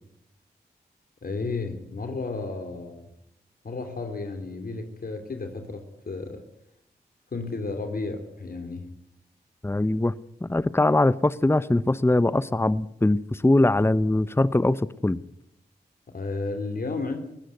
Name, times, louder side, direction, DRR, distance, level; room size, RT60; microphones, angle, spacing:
voice 1, 1.2-3.1 3.6-6.4 7.3-8.9 16.1-17.2, left 3 dB, 60° left, 5 dB, 2.9 m, -33 dB
voice 2, 9.6-10.1 10.4-15.2, left 2 dB, 15° left, 17 dB, 0.8 m, -22 dB
21.0 x 16.5 x 9.3 m, 0.78 s
cardioid pair, 45°, 17 cm